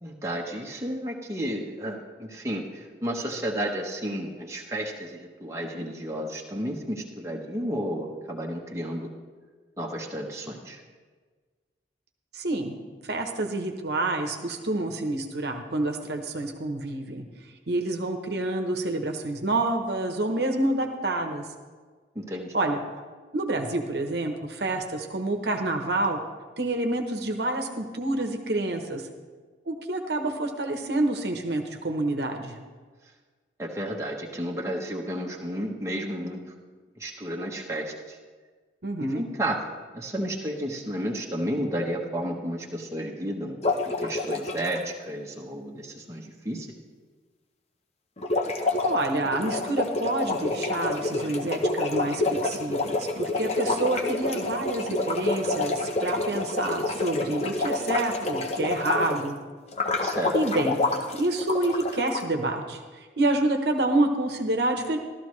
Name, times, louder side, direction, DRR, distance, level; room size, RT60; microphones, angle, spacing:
voice 1, 0.0-9.1 9.8-10.8 22.1-22.5 33.6-36.4 37.0-38.2 39.0-39.7 39.9-43.6 44.0-46.8 60.0-60.4, equal, 15° right, -1 dB, 1.0 m, -32 dB
voice 2, 12.3-12.8 13.1-17.2 17.7-21.4 22.5-22.8 23.3-26.2 26.6-29.0 29.7-32.5 38.8-39.2 48.8-59.4 60.3-60.8 61.2-62.8 63.2-65.0, right 2 dB, 60° right, 3 dB, 1.0 m, -28 dB
sound 1, 43.6-44.8 48.2-59.3 59.7-62.2, left 2 dB, 35° left, 0.8 m, -28 dB
14.0 x 13.0 x 3.2 m, 1.4 s
head